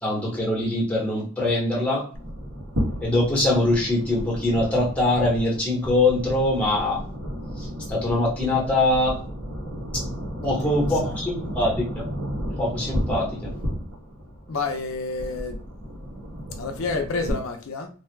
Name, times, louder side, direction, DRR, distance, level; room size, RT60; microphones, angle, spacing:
voice 1, 0.0-2.0 3.0-7.0 7.6-9.2 9.9-10.0 10.4-12.1 12.6-13.5, left 2 dB, 5° left, 1.0 m, -23 dB
sound 1, 2.1-17.3, equal, 90° right, 1.2 m, -33 dB
voice 2, 10.4-11.1 14.5-15.6 16.6-17.9, left 3 dB, 85° left, 0.5 m, -30 dB
2.6 x 2.3 x 3.2 m
head